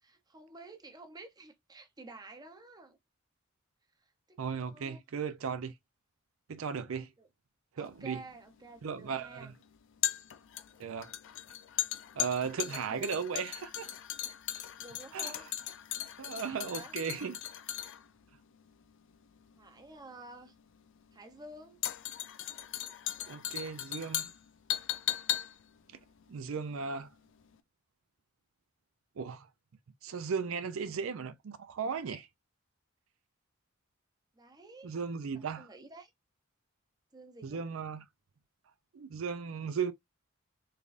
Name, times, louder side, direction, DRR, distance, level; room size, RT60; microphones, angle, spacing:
voice 1, 0.0-3.0 4.0-5.0 7.2-7.3 7.8-9.5 12.3-13.2 14.8-15.5 16.2-16.9 19.6-20.5 21.1-21.8 34.3-35.0 35.3-36.1 37.1-37.6, right 2 dB, 20° right, 0.7 m, -51 dB
voice 2, 4.4-5.7 6.5-7.1 7.8-8.2 8.8-9.5 10.8-11.1 12.2-13.9 15.1-15.3 16.2-17.4 23.3-24.3 26.3-27.1 29.2-29.5 30.0-32.3 34.8-35.7 37.4-38.0 38.9-39.9, right 6 dB, 80° right, 0.5 m, -36 dB
sound 1, 7.9-27.1 27.4-27.5, left 12 dB, 65° left, 0.5 m, -38 dB
3.6 x 3.3 x 2.5 m
head